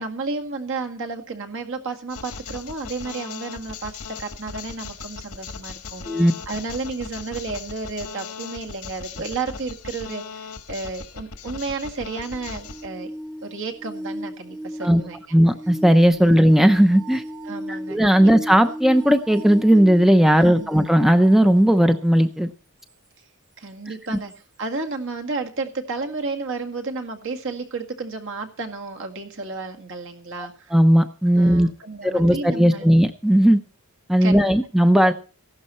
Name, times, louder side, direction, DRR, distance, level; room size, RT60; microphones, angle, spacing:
voice 1, 0.0-13.1 13.4-15.2 17.5-18.3 20.4-20.8 23.6-30.7 31.4-32.9 34.2-34.5, right 3 dB, 60° right, 3 dB, 2.0 m, -32 dB
sound 1, 2.1-12.9, left 5 dB, 85° left, 1.4 m, -38 dB
sound 2, 12.2-22.0 24.3-24.4, equal, 20° right, 0.9 m, -37 dB
voice 2, 15.3-17.2 17.9-22.5 30.7-31.7 32.0-33.6 34.1-35.1, equal, ahead, 8 dB, 0.6 m, -16 dB
15.5 x 12.0 x 4.3 m, 0.37 s
head